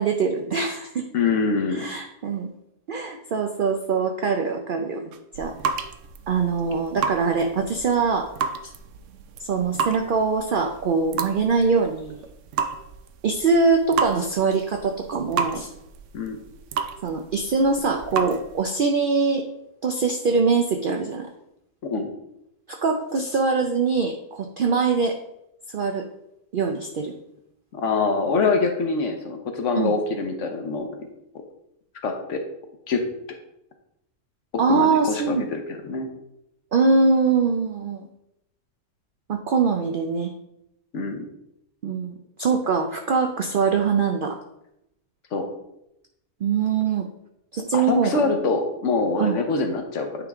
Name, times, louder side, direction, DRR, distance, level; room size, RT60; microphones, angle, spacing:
voice 1, 0.0-1.1 1.7-2.5 2.9-5.5 6.3-8.3 9.4-12.2 13.2-15.7 17.0-19.5 19.8-21.3 22.7-25.2 25.7-26.1 26.5-27.2 29.8-30.0 34.6-35.5 36.7-38.1 39.3-40.3 41.8-44.4 46.4-47.1 47.5-48.3 49.2-49.4, right 4 dB, 85° right, 5 dB, 0.4 m, -23 dB
voice 2, 1.1-1.9 16.1-16.4 21.8-22.1 27.7-30.9 32.0-32.4 32.9-33.0 34.5-36.1 40.9-41.2 45.3-45.5 47.7-50.1, left 4 dB, 60° left, 5 dB, 1.1 m, -24 dB
sound 1, 5.1-18.6, right 5 dB, 65° right, 0.8 m, -32 dB
8.9 x 3.5 x 3.5 m, 0.82 s
omnidirectional pair, 1.5 m